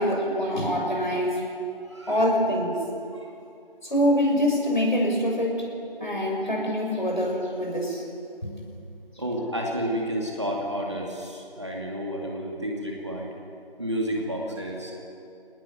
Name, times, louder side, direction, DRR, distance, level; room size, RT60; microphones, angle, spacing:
voice 1, 0.0-1.4 2.1-2.7 3.8-5.7 6.0-8.0 8.4-8.6, equal, 50° left, 0 dB, 6.5 m, -24 dB
voice 2, 9.2-13.3 13.8-14.9, equal, 30° right, -1 dB, 2.6 m, -30 dB
24.5 x 19.5 x 9.4 m, 2.5 s
figure-of-eight pair, 175°, 30 cm